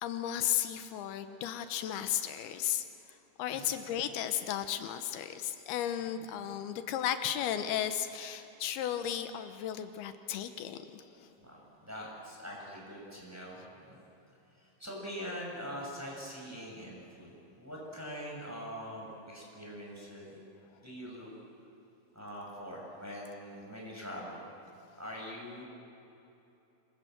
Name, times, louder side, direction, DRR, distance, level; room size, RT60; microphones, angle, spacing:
voice 1, 0.0-2.8 3.4-11.3, left 10 dB, 85° left, 9 dB, 2.9 m, -34 dB
voice 2, 11.4-14.0 14.8-20.4 20.8-21.3 22.1-24.5 25.0-25.6, equal, 5° right, -3 dB, 6.3 m, -43 dB
27.5 x 21.0 x 7.8 m, 2.9 s
omnidirectional pair, 4.5 m